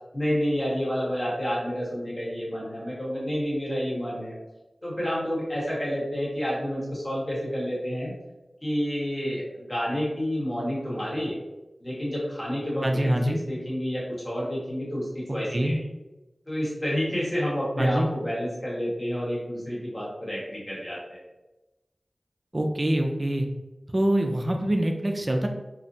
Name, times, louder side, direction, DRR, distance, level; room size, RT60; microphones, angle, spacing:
voice 1, 0.1-4.3 4.8-8.1 8.6-11.4 11.8-15.7 16.5-21.2, equal, 25° left, -6 dB, 1.1 m, -29 dB
voice 2, 12.8-13.4 15.5-15.8 17.8-18.1 22.5-23.5 23.9-25.5, right 1 dB, 30° right, 3 dB, 0.3 m, -24 dB
2.5 x 2.0 x 2.6 m, 1.0 s
wide cardioid pair, 60°, 0 cm